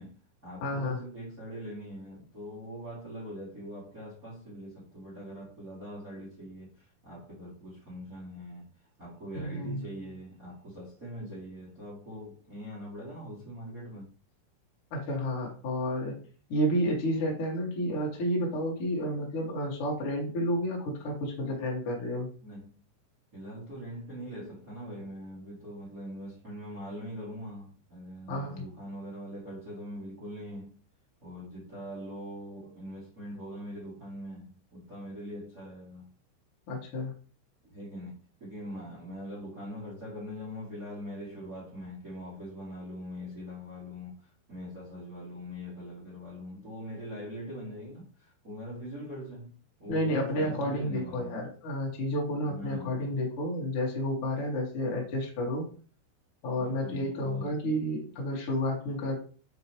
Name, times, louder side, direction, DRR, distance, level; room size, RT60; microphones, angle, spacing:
voice 1, 0.0-8.7 9.0-14.1 22.4-22.8 23.3-30.8 31.2-36.1 37.7-51.4 52.4-53.1 56.6-57.6, equal, 70° right, 0.8 m, -42 dB
voice 2, 0.6-1.0 9.3-9.8 14.9-16.1 16.5-22.3 28.3-28.6 36.7-37.1 49.9-55.7 56.4-59.2, equal, 55° left, 1.5 m, -31 dB
6.7 x 5.1 x 3.1 m
omnidirectional pair, 5.9 m